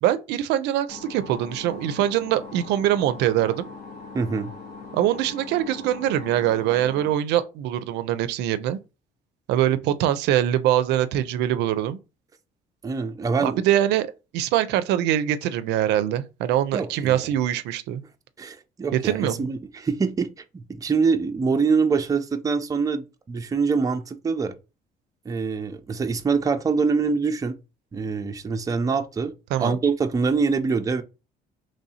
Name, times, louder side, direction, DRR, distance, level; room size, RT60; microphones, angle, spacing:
voice 1, 0.0-3.7 4.9-8.8 9.5-12.0 13.4-14.1 14.3-18.0 19.0-19.4 29.5-29.8, right 12 dB, 85° right, 0.4 m, -23 dB
sound 1, 0.9-7.1, left 4 dB, 70° left, 1.3 m, -41 dB
voice 2, 4.1-4.5 12.8-13.6 16.7-17.3 18.4-24.5 25.3-27.6 27.9-29.3 29.6-31.0, right 5 dB, 20° right, 0.4 m, -24 dB
3.1 x 2.7 x 4.1 m
cardioid pair, 110°, 17 cm